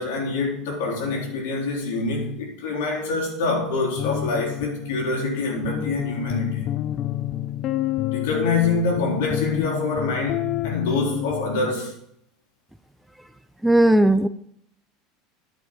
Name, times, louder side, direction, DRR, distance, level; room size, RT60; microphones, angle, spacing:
voice 1, 0.0-6.6 8.1-12.0, left 3 dB, 80° left, 3.6 m, -25 dB
sound 1, 4.0-11.7, left 13 dB, 50° left, 0.5 m, -29 dB
voice 2, 13.6-14.3, right 1 dB, 5° right, 0.4 m, -16 dB
10.5 x 5.3 x 5.6 m
supercardioid pair, 110°, 0 cm